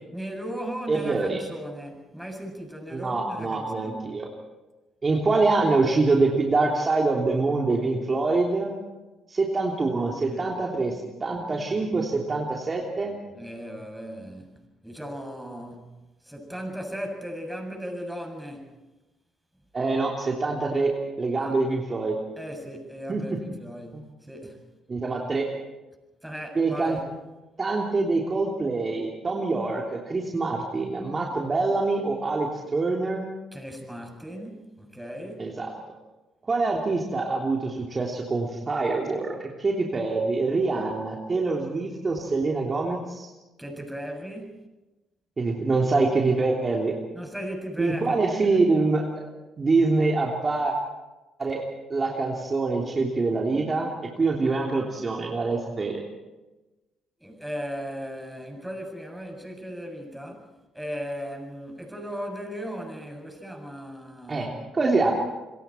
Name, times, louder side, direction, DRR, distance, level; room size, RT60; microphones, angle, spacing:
voice 1, 0.1-4.1 10.2-10.6 13.3-18.8 21.4-21.5 22.4-24.7 26.2-27.1 33.5-35.5 43.6-44.6 47.1-48.6 57.2-60.5 60.7-64.6, equal, 5° right, 7.4 m, -37 dB
voice 2, 0.9-1.4 2.9-4.3 5.0-8.8 9.3-13.2 19.7-20.9 21.2-22.2 23.1-23.4 23.9-24.0 24.9-25.4 26.5-27.0 27.6-33.3 35.4-35.7 36.5-43.3 45.4-46.9 47.8-49.0 49.6-50.8 51.4-51.6 51.9-53.9 54.2-56.0 64.3-65.1, right 3 dB, 35° right, 3.2 m, -25 dB
27.5 x 22.5 x 4.5 m
hypercardioid pair, 50°, 0 cm